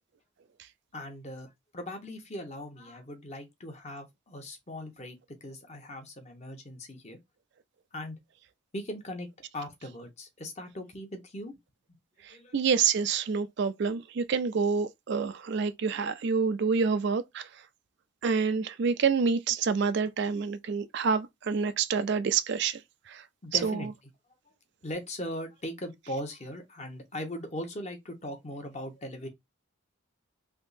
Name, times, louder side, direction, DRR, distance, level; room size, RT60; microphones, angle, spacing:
voice 1, 0.9-7.2 7.9-8.2 8.7-9.3 9.5-11.5 11.9-12.0 12.3-12.6 23.4-23.9 24.8-29.3, left 1 dB, 30° left, 0.9 m, -39 dB
voice 2, 12.5-17.5 18.2-22.8 23.1-23.2 23.6-23.8, right 5 dB, 50° right, 0.3 m, -27 dB
3.5 x 2.8 x 2.6 m
head